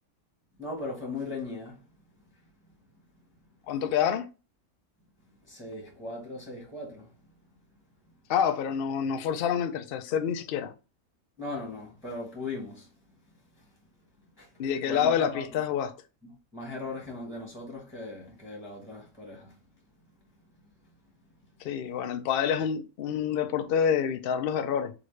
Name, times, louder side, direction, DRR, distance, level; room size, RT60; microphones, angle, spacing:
voice 1, 0.6-1.8 2.6-2.7 5.4-7.2 8.0-8.1 11.4-13.7 14.4-15.5 16.2-19.6 20.4-20.7, left 2 dB, 5° right, 0.8 m, -39 dB
voice 2, 3.7-4.2 8.3-10.7 14.6-15.9 21.6-24.9, left 8 dB, 80° left, 0.5 m, -27 dB
3.7 x 2.5 x 3.1 m
omnidirectional pair, 1.5 m